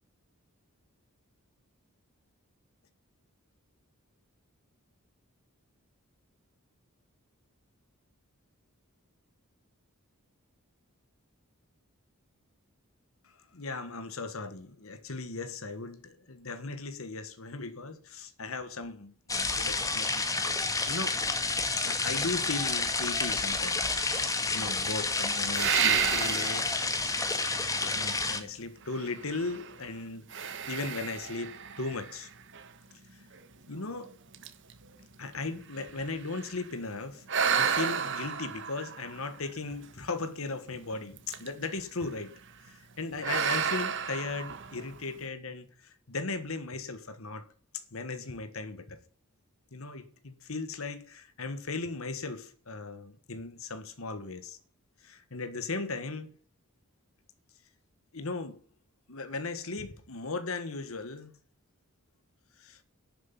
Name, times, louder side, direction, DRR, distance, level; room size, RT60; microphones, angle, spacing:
voice 1, 13.2-20.6 20.8-21.1 21.8-26.9 27.3-27.4 27.8-32.3 33.1-33.3 33.7-34.1 35.2-42.3 42.6-47.5 47.7-49.0 49.7-54.6 55.0-56.3 58.1-58.6 59.1-61.3 62.6-62.8, left 3 dB, 70° left, 1.5 m, -37 dB
sound 1, 19.3-28.4, left 3 dB, 15° left, 1.6 m, -30 dB
sound 2, 25.5-26.8 27.4-27.5 28.9-29.8 30.3-32.7 33.4-33.5 33.9-34.1 34.3-36.6 37.3-40.0 41.2-41.7 42.0-42.3 43.2-45.1, right 7 dB, 55° right, 1.4 m, -32 dB
11.0 x 9.1 x 7.2 m
head